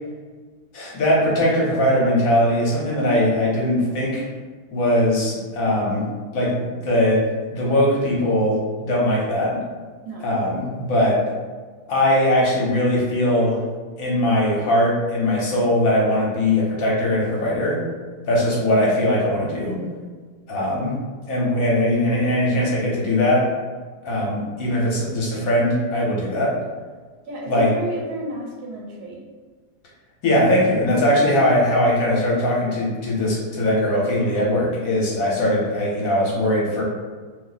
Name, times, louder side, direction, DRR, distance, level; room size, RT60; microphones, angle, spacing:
voice 1, 0.7-4.3 4.7-6.0 6.3-7.3 7.5-9.6 10.2-11.2 11.9-13.6 14.0-17.8 18.2-19.8 20.5-20.9 21.3-23.5 24.0-26.6 27.5-27.7 30.2-36.8, left 1 dB, 65° left, -5 dB, 1.2 m, -20 dB
voice 2, 27.2-29.2, right 1 dB, 70° right, -3 dB, 1.2 m, -32 dB
2.8 x 2.0 x 3.9 m, 1.5 s
omnidirectional pair, 1.7 m